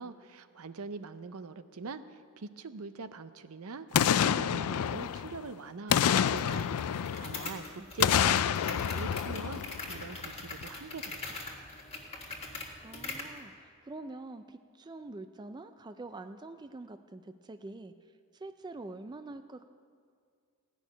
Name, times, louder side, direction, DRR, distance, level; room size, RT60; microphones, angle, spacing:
voice 1, 0.0-11.5, right 4 dB, 70° right, 11 dB, 0.6 m, -43 dB
Boom, 3.9-5.5 5.9-7.5 8.0-10.2 10.6-10.7, left 9 dB, 80° left, 0.4 m, -28 dB
sound 1, 6.3-13.4, left 3 dB, 25° left, 1.8 m, -43 dB
voice 2, 7.8-8.3 12.8-17.9 18.3-19.6, right 2 dB, 20° right, 9 dB, 0.4 m, -45 dB
15.5 x 6.3 x 9.9 m, 2.2 s
head